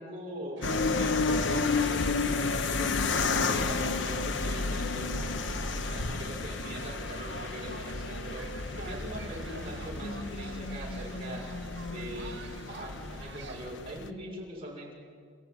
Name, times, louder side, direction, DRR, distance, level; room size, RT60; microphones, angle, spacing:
voice 1, 0.0-5.3 5.7-8.5 8.8-11.5 11.8-14.9, right 1 dB, 30° right, -3 dB, 6.5 m, -42 dB
sound 1, 0.6-14.1, left 4 dB, 80° left, 1.0 m, -31 dB
sound 2, 0.6-13.6, right 3 dB, 85° right, 2.2 m, -47 dB
28.0 x 16.0 x 9.7 m, 2.1 s
head